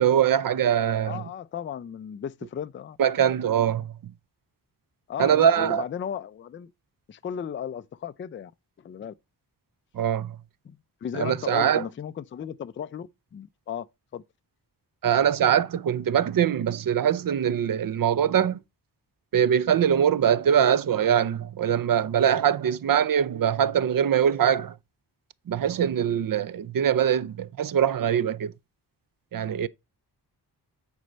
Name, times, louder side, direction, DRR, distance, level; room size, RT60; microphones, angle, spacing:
voice 1, 0.0-1.2 3.0-3.8 5.2-5.8 9.9-10.4 11.1-11.8 15.0-18.6 19.3-24.7 25.5-28.5 29.3-29.7, right 9 dB, 55° right, 0.5 m, -22 dB
voice 2, 1.0-3.0 3.7-3.8 5.1-6.7 7.1-8.5 8.8-9.1 10.6-13.9 14.1-14.2, left 8 dB, 30° left, 0.4 m, -35 dB
9.4 x 4.4 x 5.1 m
wide cardioid pair, 130°, 40 cm